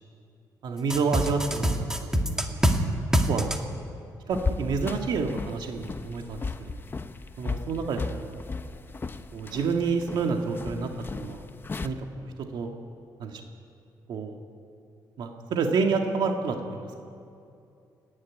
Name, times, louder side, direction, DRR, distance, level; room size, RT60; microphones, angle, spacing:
voice 1, 0.6-1.9 2.2-2.7 3.3-3.5 4.3-6.8 7.4-8.4 9.3-10.9 11.2-11.4 11.8-12.7 13.2-13.4 14.1-14.4 15.2-16.9, right 4 dB, 75° right, 3 dB, 1.8 m, -29 dB
sound 1, 0.9-2.8 3.1-3.6, equal, 5° right, 2.0 m, -24 dB
sound 2, 4.3-11.9, left 4 dB, 30° left, 0.9 m, -35 dB
28.0 x 11.0 x 9.6 m, 2.5 s
cardioid pair, 100°, 8 cm